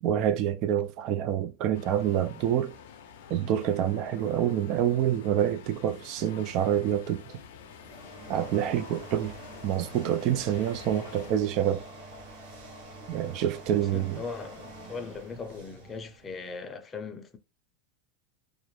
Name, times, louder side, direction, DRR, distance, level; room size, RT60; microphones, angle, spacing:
voice 1, 0.0-2.8 3.3-7.4 8.3-9.4 9.6-11.8 13.1-14.2, right 10 dB, 50° right, 0.3 m, -27 dB
sound 1, 1.7-11.3, left 8 dB, 85° left, 0.4 m, -48 dB
sound 2, 7.5-16.7, right 1 dB, 75° right, 0.9 m, -47 dB
voice 2, 13.9-17.4, left 4 dB, 20° left, 0.5 m, -39 dB
2.4 x 2.0 x 3.0 m
supercardioid pair, 125°, 0 cm